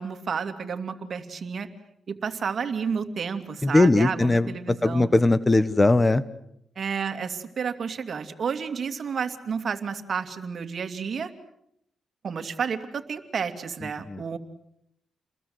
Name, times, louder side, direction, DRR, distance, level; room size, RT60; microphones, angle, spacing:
voice 1, 0.0-1.7 2.1-5.1 6.8-11.3 12.2-14.4, right 6 dB, 55° right, 9 dB, 2.7 m, -31 dB
voice 2, 3.6-6.2 14.1-14.2, left 2 dB, 20° left, 15 dB, 1.2 m, -20 dB
29.5 x 21.0 x 8.0 m, 0.76 s
cardioid pair, 90°, 0 cm